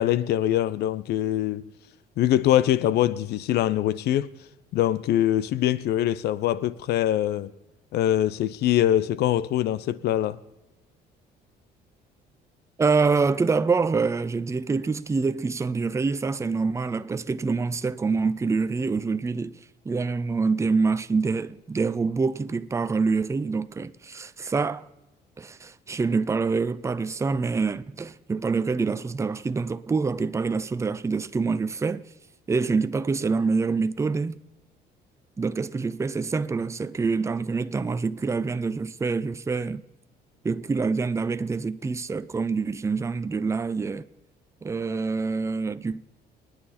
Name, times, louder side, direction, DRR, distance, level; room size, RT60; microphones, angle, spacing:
voice 1, 0.0-1.6 2.2-4.3 4.7-7.5 7.9-10.4, left 12 dB, 75° left, 0.7 m, -23 dB
voice 2, 12.8-24.9 25.4-32.0 32.5-34.4 35.4-39.8 40.4-44.1 44.6-46.0, right 4 dB, 15° right, 0.6 m, -26 dB
28.5 x 9.6 x 4.3 m
cardioid pair, 110°, 17 cm